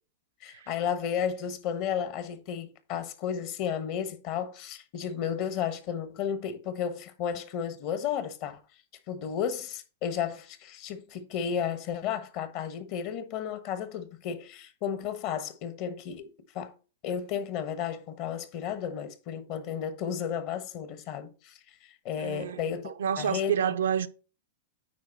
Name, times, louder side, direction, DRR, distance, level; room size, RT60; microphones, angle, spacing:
voice 1, 0.4-8.6 9.1-16.7 17.0-21.6 22.0-22.9 23.2-23.5, left 8 dB, 50° left, 1.2 m, -33 dB
voice 2, 22.2-24.1, right 8 dB, 80° right, 0.6 m, -29 dB
9.3 x 4.1 x 4.0 m
hypercardioid pair, 125°, 0 cm